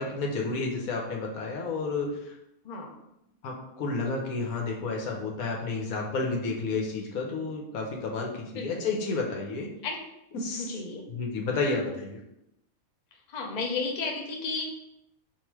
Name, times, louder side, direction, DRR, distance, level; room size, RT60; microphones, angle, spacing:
voice 1, 0.0-2.3 3.4-9.7 10.3-10.7 11.1-12.2, left 3 dB, 80° left, 0 dB, 1.3 m, -31 dB
voice 2, 8.5-8.9 9.8-10.0 10.6-11.1 13.3-14.6, left 4 dB, 45° left, 1 dB, 0.6 m, -33 dB
3.7 x 2.6 x 4.6 m, 0.83 s
omnidirectional pair, 1.5 m